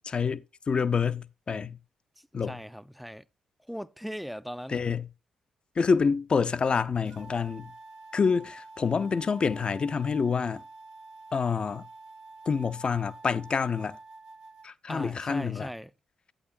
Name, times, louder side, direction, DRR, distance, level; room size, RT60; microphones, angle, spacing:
voice 1, 0.0-1.8 2.3-2.6 4.7-5.1 5.8-7.7 8.1-10.6 11.3-11.8 12.5-14.0 14.6-15.7, left 5 dB, 45° left, 0.7 m, -27 dB
voice 2, 2.2-3.2 3.7-4.8 14.9-15.9, equal, ahead, 0.6 m, -39 dB
sound 1, 7.1-14.7, right 3 dB, 75° right, 1.8 m, -48 dB
11.5 x 8.6 x 2.7 m
hypercardioid pair, 40°, 2 cm